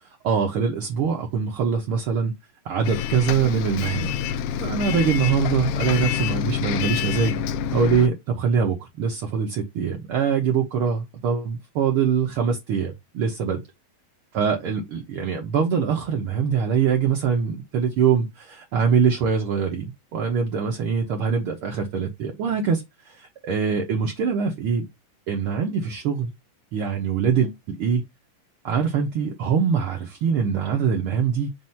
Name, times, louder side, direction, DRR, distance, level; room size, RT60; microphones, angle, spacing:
voice 1, 0.2-2.3 2.6-4.1 4.6-7.4 7.7-13.6 14.3-19.8 20.1-24.8 25.3-26.3 26.7-28.0 28.6-31.5, right 6 dB, 60° right, 1.5 m, -23 dB
Bus, 2.8-8.1, left 8 dB, 85° left, 2.2 m, -27 dB
6.2 x 2.7 x 5.5 m
omnidirectional pair, 3.8 m